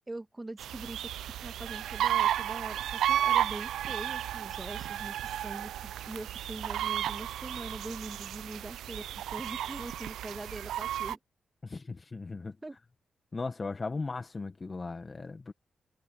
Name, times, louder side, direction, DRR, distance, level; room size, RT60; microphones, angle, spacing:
voice 1, 0.1-1.1 1.4-9.0 9.3-11.2 12.6-12.8, right 2 dB, 20° right, 1.9 m, -43 dB
sound 1, 0.6-11.2, right 11 dB, 85° right, 0.4 m, -33 dB
voice 2, 11.6-12.6 13.3-15.5, left 3 dB, 35° left, 1.7 m, -37 dB
supercardioid pair, 55°, 0 cm